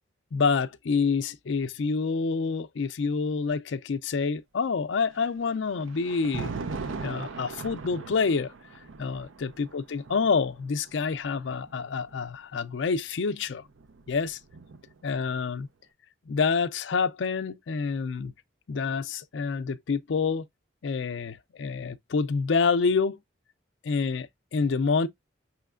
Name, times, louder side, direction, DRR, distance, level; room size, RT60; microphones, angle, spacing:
voice 1, 0.3-6.5 7.0-8.5 9.0-13.6 14.1-14.4 15.0-15.7 16.3-18.3 18.7-20.4 20.8-23.2 23.8-25.1, left 5 dB, 70° left, 0.4 m, -27 dB
Thunder, 5.1-12.3 13.4-15.1, right 4 dB, 85° right, 0.5 m, -40 dB
5.7 x 3.1 x 2.3 m
head